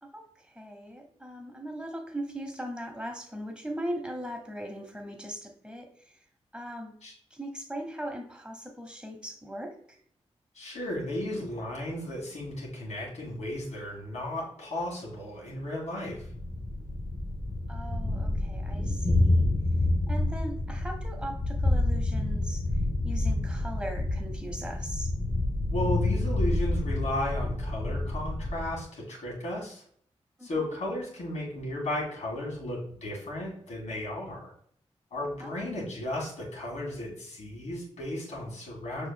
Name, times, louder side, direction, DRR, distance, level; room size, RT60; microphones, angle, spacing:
voice 1, 0.0-6.2 6.5-6.9 7.3-10.0 17.7-19.5 20.1-22.6 23.0-25.1 30.4-30.5 35.4-35.6, equal, 10° right, 3 dB, 1.0 m, -39 dB
voice 2, 10.5-16.3 25.7-29.8 30.4-34.5 35.1-39.1, left 1 dB, 75° left, -3 dB, 1.9 m, -34 dB
Thunder, 16.2-28.8, left 2 dB, 25° left, 0.8 m, -28 dB
6.2 x 3.1 x 2.3 m, 0.62 s
cardioid pair, 55°, 12 cm